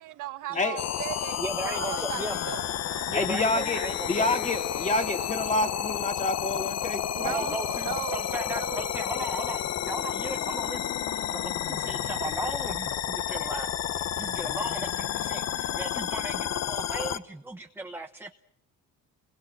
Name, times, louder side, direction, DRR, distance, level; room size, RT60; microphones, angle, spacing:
voice 1, 0.0-2.6 7.1-9.0, right 14 dB, 80° right, 1.6 m, -37 dB
sound 1, 0.8-17.2, left 11 dB, 55° left, 1.1 m, -31 dB
voice 2, 1.4-2.4 3.1-4.4 7.2-13.9 14.2-18.3, right 2 dB, 5° right, 1.1 m, -37 dB
voice 3, 3.1-3.8 4.1-7.4, left 2 dB, 25° left, 3.1 m, -28 dB
29.5 x 22.0 x 8.9 m
cardioid pair, 125°, 31 cm